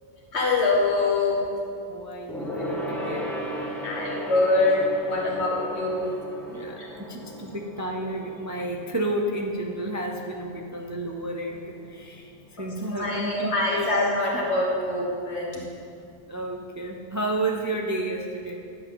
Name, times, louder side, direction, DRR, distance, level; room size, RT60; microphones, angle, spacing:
voice 1, 0.3-1.5 3.8-6.1 6.8-6.9 12.6-15.7, left 2 dB, 80° left, -4 dB, 1.8 m, -24 dB
voice 2, 1.9-3.3 6.5-13.9 14.3-14.5 16.3-18.6, right 1 dB, 25° right, 1 dB, 0.4 m, -31 dB
Gong, 2.3-12.1 12.4-12.6 12.9-13.0, equal, ahead, 0.8 m, -36 dB
10.5 x 7.6 x 3.8 m, 2.4 s
omnidirectional pair, 1.1 m